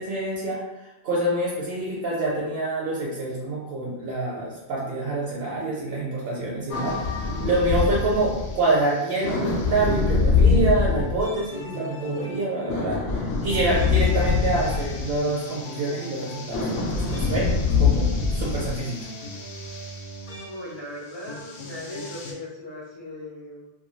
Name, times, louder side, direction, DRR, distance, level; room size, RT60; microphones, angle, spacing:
voice 1, 0.0-13.0 13.4-17.5 17.8-19.0, right 2 dB, 65° right, -5 dB, 0.8 m, -26 dB
sound 1, 6.7-8.9 9.2-20.4 21.3-22.3, left 4 dB, 70° left, 0.8 m, -25 dB
voice 2, 20.4-23.7, left 1 dB, 40° left, -7 dB, 0.4 m, -38 dB
2.2 x 2.2 x 3.1 m, 0.95 s
omnidirectional pair, 1.1 m